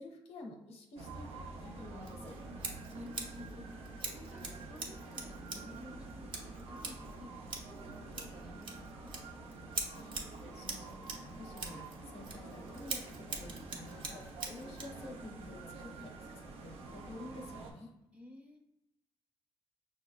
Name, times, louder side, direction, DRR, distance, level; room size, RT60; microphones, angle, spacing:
voice 1, 0.0-2.4 9.9-10.2 10.5-17.9, left 2 dB, 80° left, 2 dB, 0.7 m, -50 dB
sound 1, 1.0-17.7, right 3 dB, 80° right, 0.6 m, -48 dB
Scissors, 2.0-15.0, right 3 dB, 50° right, 0.9 m, -45 dB
voice 2, 2.9-3.7 4.1-7.3 7.7-9.1 18.1-18.6, left 1 dB, 10° right, 2 dB, 0.7 m, -53 dB
5.9 x 2.1 x 2.3 m, 0.92 s
cardioid pair, 100°, 10 cm